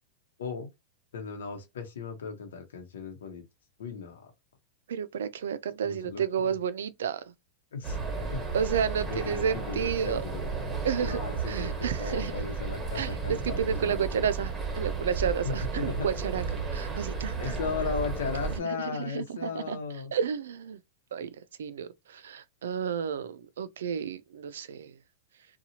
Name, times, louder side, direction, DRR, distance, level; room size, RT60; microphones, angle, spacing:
voice 1, 1.1-3.4 3.8-4.3 5.8-6.2 7.7-8.4 9.1-10.5 11.0-13.6 13.9-14.1 15.4-16.1 17.4-20.1, left 5 dB, 90° left, 0.8 m, -36 dB
voice 2, 4.9-7.2 8.5-10.2 10.8-11.2 11.5-12.3 12.9-16.4 16.7-17.6 18.6-19.8 20.1-20.8 21.1-21.3 21.6-24.9, right 7 dB, 90° right, 0.4 m, -31 dB
sound 1, 7.8-18.6, right 4 dB, 20° right, 1.2 m, -33 dB
2.8 x 2.3 x 2.8 m
supercardioid pair, 135°, 0 cm